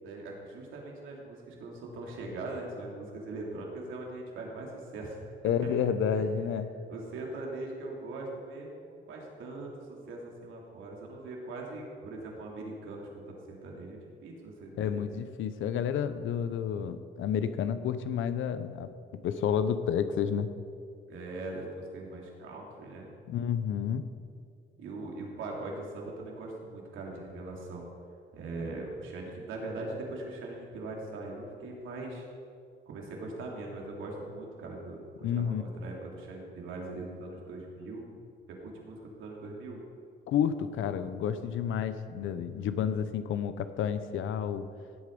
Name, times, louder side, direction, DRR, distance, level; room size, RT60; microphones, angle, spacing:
voice 1, 0.0-5.3 5.6-6.3 6.9-15.0 21.1-23.1 24.8-27.9 28.3-32.3 32.9-38.1 38.5-39.8, right 2 dB, 85° right, -1 dB, 2.7 m, -41 dB
voice 2, 5.4-6.7 14.8-18.9 19.2-20.5 23.3-24.1 35.2-35.6 40.3-44.7, left 8 dB, 80° left, 11 dB, 0.8 m, -30 dB
17.0 x 8.3 x 5.3 m, 2.3 s
cardioid pair, 90°, 20 cm